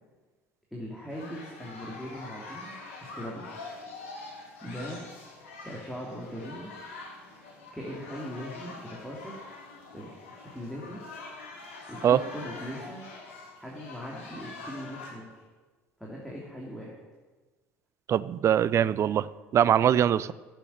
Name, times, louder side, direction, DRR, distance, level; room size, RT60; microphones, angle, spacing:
voice 1, 0.7-3.5 4.6-5.0 5.6-6.7 7.7-9.4 9.9-11.0 11.9-13.1 13.6-15.3 16.0-17.0, equal, 5° left, -4 dB, 2.9 m, -40 dB
sound 1, 1.1-15.1, left 3 dB, 75° left, 2.8 m, -44 dB
voice 2, 18.1-19.3 19.5-20.3, right 9 dB, 40° right, 18 dB, 0.5 m, -22 dB
8.7 x 8.4 x 9.2 m, 1.3 s
figure-of-eight pair, 60°, 7 cm